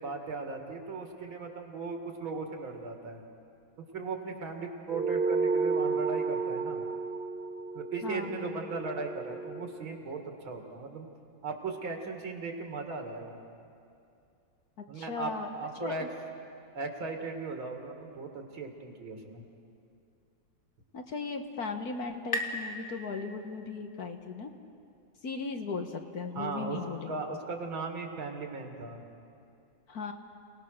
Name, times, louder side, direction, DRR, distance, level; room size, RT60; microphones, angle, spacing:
voice 1, 0.0-3.2 3.9-6.8 7.7-11.1 11.4-13.4 14.9-16.1 16.7-19.4 26.3-26.8 27.1-29.0, right 3 dB, 80° right, 3 dB, 2.9 m, -37 dB
sound 1, 4.9-9.7, right 4 dB, 60° right, 1.6 m, -32 dB
voice 2, 8.0-8.5 14.9-15.5 15.8-16.1 20.9-24.5 25.2-27.1 29.9-30.1, left 4 dB, 55° left, 5 dB, 1.5 m, -37 dB
sound 2, 20.9-24.2, left 1 dB, 25° left, 1.9 m, -40 dB
29.0 x 19.0 x 6.5 m, 2.5 s
omnidirectional pair, 2.2 m